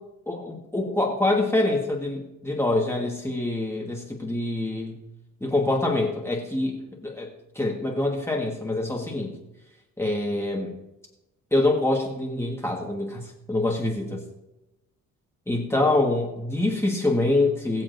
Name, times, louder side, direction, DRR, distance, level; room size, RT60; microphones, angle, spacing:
voice 1, 0.3-5.0 5.4-7.3 7.5-9.3 10.0-10.8 11.5-14.2 15.5-17.8, left 2 dB, 10° left, -2 dB, 1.6 m, -25 dB
21.5 x 7.3 x 2.7 m, 0.95 s
cardioid pair, 90°, 30 cm